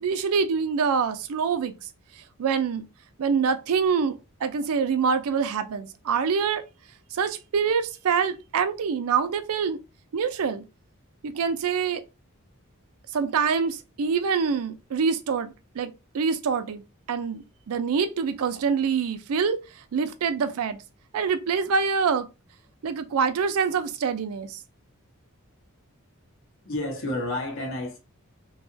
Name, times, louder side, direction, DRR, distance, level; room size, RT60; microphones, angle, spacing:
voice 1, 0.0-1.7 2.4-2.9 3.2-6.6 7.1-9.8 10.1-10.6 11.2-12.0 13.1-16.8 17.1-19.6 19.9-20.8 21.1-22.3 22.8-24.6, right 6 dB, 80° right, 0.4 m, -25 dB
voice 2, 26.6-28.0, left 1 dB, 60° left, 0.8 m, -30 dB
2.8 x 2.3 x 2.5 m
head